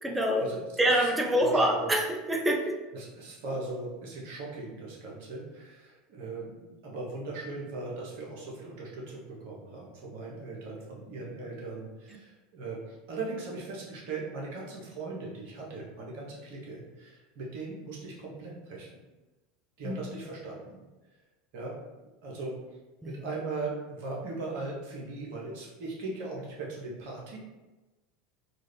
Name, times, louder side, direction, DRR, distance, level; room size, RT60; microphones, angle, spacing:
voice 1, 0.0-0.5 0.8-2.8 19.8-20.0 23.0-23.2, equal, 15° right, 2 dB, 0.6 m, -26 dB
voice 2, 1.4-1.9 2.9-18.9 19.8-20.8 21.5-21.7 22.2-22.5 23.0-27.4, right 3 dB, 60° right, -3 dB, 1.0 m, -39 dB
3.8 x 2.5 x 3.3 m, 1.1 s
figure-of-eight pair, 75°, 0 cm